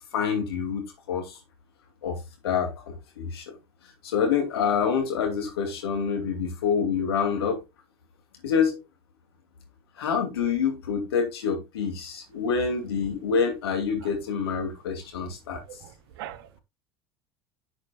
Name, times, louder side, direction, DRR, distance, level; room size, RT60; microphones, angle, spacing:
voice 1, 0.1-1.4 2.0-3.6 4.0-7.6 8.4-8.8 10.0-15.6, left 6 dB, 75° left, 2.6 m, -27 dB
voice 2, 15.5-16.6, right 13 dB, 65° right, 1.0 m, -42 dB
11.0 x 6.5 x 2.3 m
figure-of-eight pair, 65°, 13 cm